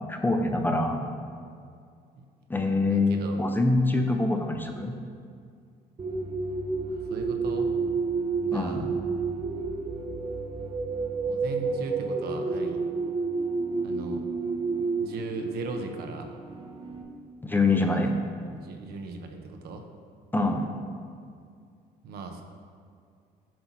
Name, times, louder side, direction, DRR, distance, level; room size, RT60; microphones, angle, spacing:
voice 1, 0.1-1.1 2.5-4.9 8.5-8.9 17.4-18.1 20.3-20.7, left 2 dB, 10° left, 3 dB, 0.4 m, -25 dB
voice 2, 2.9-3.4 6.9-7.7 8.4-8.9 11.2-12.8 13.8-14.2 14.8-16.3 17.8-18.0 18.4-19.8 22.0-22.4, right 4 dB, 65° right, 4 dB, 0.7 m, -38 dB
sound 1, 6.0-17.0, right 4 dB, 30° right, 0.6 m, -30 dB
7.5 x 2.9 x 5.8 m, 2.3 s
cardioid pair, 110°, 17 cm